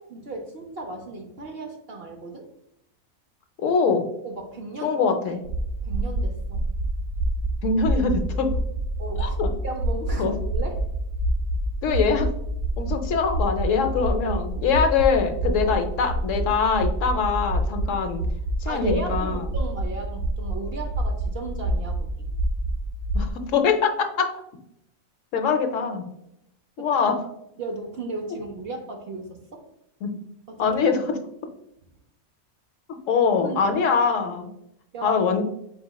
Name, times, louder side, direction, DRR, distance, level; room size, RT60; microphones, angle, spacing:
voice 1, 0.1-2.5 4.2-5.0 5.3-5.4 5.8-6.6 9.0-10.8 15.6-15.7 18.7-22.1 26.8-26.9 27.6-29.6 30.5-30.7 33.4-33.8 34.9-35.2, right 2 dB, 55° right, 3 dB, 0.7 m, -35 dB
voice 2, 3.6-4.1 4.8-5.4 7.6-8.5 9.2-9.5 10.2-10.3 11.8-12.3 12.8-18.3 18.6-19.4 23.1-24.3 25.3-26.0 26.8-27.2 30.0-30.1 30.6-31.2 33.1-34.5 35.0-35.4, left 5 dB, 70° left, 6 dB, 0.9 m, -23 dB
sound 1, 5.4-23.3, right 1 dB, 85° right, 1.1 m, -27 dB
4.7 x 4.0 x 2.2 m, 0.79 s
omnidirectional pair, 1.5 m